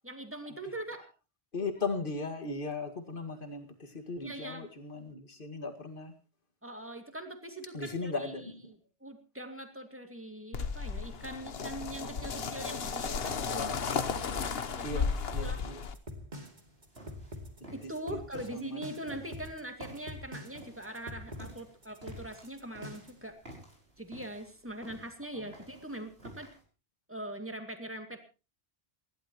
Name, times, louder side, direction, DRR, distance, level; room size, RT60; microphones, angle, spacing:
voice 1, 0.0-1.1 4.2-4.7 6.6-13.7 14.8-15.0 15.4-15.6 17.7-23.4 24.0-26.5 27.1-28.2, right 1 dB, 10° right, 5 dB, 2.4 m, -42 dB
voice 2, 1.5-6.1 7.7-8.7 14.8-15.8 18.1-18.2 18.5-18.8 25.3-25.4, left 3 dB, 60° left, 6 dB, 2.3 m, -37 dB
sound 1, 10.5-15.9, left 5 dB, 75° left, 1.3 m, -34 dB
sound 2, 15.3-23.2, left 1 dB, 45° right, 2.7 m, -45 dB
sound 3, 16.3-26.6, right 1 dB, 85° right, 6.1 m, -53 dB
27.5 x 12.0 x 3.1 m, 0.31 s
omnidirectional pair, 1.0 m